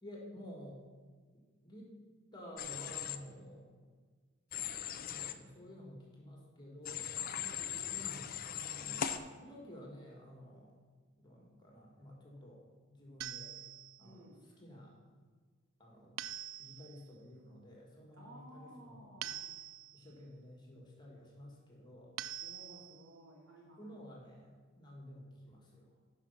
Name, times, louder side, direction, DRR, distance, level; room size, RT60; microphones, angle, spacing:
voice 1, 0.0-0.8 1.6-1.9 2.3-3.7 5.0-7.0 7.9-10.7 11.2-12.6 12.9-13.5 14.0-15.0 15.8-16.2 16.6-19.1 19.9-22.2 23.8-25.9, equal, 20° left, -2 dB, 2.0 m, -52 dB
Human voice / Train, 2.6-3.2 4.5-5.3 6.8-9.2, left 9 dB, 45° left, 0.5 m, -39 dB
voice 2, 7.3-8.0 14.0-14.5 18.1-19.5 22.4-24.1, right 1 dB, 85° right, -2 dB, 2.8 m, -56 dB
sound 1, 13.2-14.1 16.2-17.0 19.2-20.1 22.2-23.1, right 12 dB, 70° right, 0.3 m, -45 dB
11.0 x 5.4 x 5.8 m, 1.5 s
head